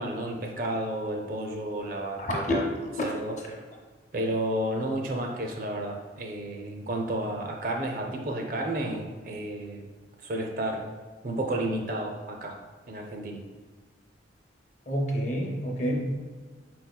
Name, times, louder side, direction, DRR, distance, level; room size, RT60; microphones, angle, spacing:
voice 1, 0.0-2.4 3.0-3.4 4.1-9.9 10.2-10.8 11.2-12.6 12.9-13.4, right 1 dB, 50° right, 2 dB, 0.5 m, -31 dB
voice 2, 2.2-2.6 3.5-3.6 14.9-16.0, equal, 40° left, 0 dB, 0.7 m, -28 dB
4.3 x 4.2 x 2.2 m, 1.4 s
head